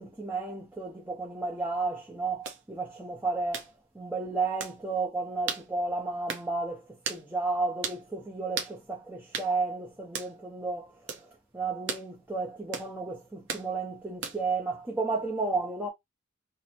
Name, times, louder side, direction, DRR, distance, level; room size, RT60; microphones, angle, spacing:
voice 1, 0.0-15.9, right 3 dB, 10° right, 0.6 m, -33 dB
sound 1, 2.4-2.6 3.5-3.7 4.6-4.8 5.5-5.7 6.3-6.5 7.0-7.2 7.8-8.0 8.6-8.8 9.3-9.5 10.1-10.3 11.1-11.3 11.9-12.1 12.7-12.9 13.5-13.7 14.2-14.5, right 6 dB, 60° right, 0.7 m, -35 dB
4.1 x 2.0 x 3.0 m
head